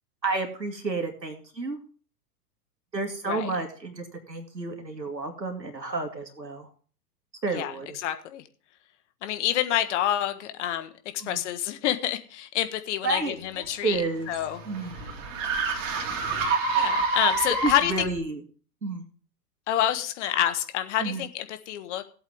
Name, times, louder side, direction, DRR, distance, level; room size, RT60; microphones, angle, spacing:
voice 1, 0.2-1.8 2.9-6.7 7.4-8.0 11.2-11.5 13.0-14.3 14.7-15.1 17.6-18.4 18.8-19.0 21.0-21.2, right 3 dB, 90° right, 4 dB, 2.7 m, -31 dB
voice 2, 7.5-8.4 9.2-14.0 14.3-14.6 16.7-18.1 19.7-22.1, left 11 dB, 45° left, 9 dB, 1.5 m, -28 dB
sound 1, 13.6-18.2, right 4 dB, 50° right, 2.9 m, -28 dB
17.5 x 8.1 x 3.6 m, 0.42 s
figure-of-eight pair, 105°, 49 cm